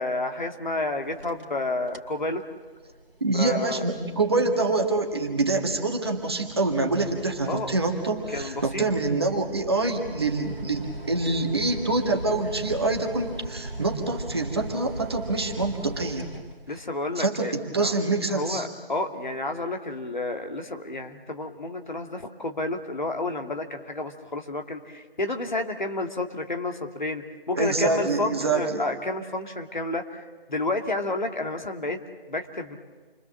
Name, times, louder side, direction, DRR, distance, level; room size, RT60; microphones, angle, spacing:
voice 1, 0.0-2.4 3.3-3.8 7.5-7.7 8.3-8.9 16.7-17.9 18.3-32.0 32.3-32.8, left 2 dB, 50° left, 4 dB, 2.2 m, -30 dB
sound 1, 1.1-1.6 1.9-2.2 2.7-17.0, right 2 dB, 65° right, 2.6 m, -39 dB
voice 2, 3.2-16.3 17.2-18.7 27.6-28.8, right 3 dB, 25° right, 2 dB, 1.8 m, -26 dB
29.5 x 23.5 x 7.6 m, 1.4 s
figure-of-eight pair, 165°, 30 cm